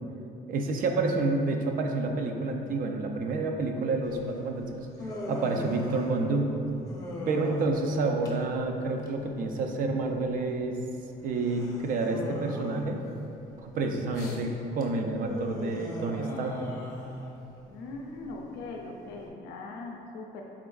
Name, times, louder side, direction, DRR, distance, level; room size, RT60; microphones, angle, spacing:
voice 1, 0.5-4.9 5.3-6.5 7.3-10.8 11.2-13.0 13.6-16.6, right 3 dB, 55° right, 3 dB, 0.4 m, -29 dB
Human voice, 4.0-19.3, left 1 dB, 20° left, 0.6 m, -40 dB
voice 2, 17.7-20.4, left 3 dB, 90° left, 1 dB, 0.4 m, -40 dB
4.3 x 3.6 x 2.3 m, 2.9 s
cardioid pair, 110°, 17 cm